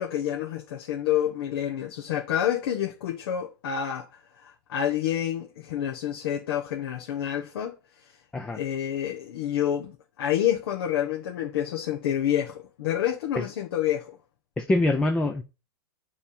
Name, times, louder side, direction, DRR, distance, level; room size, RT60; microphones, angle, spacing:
voice 1, 0.0-4.1 4.4-7.7 8.5-14.1, left 10 dB, 70° left, 1.1 m, -28 dB
voice 2, 14.6-15.4, left 2 dB, 5° left, 0.4 m, -24 dB
7.2 x 3.4 x 5.2 m
supercardioid pair, 155°, 13 cm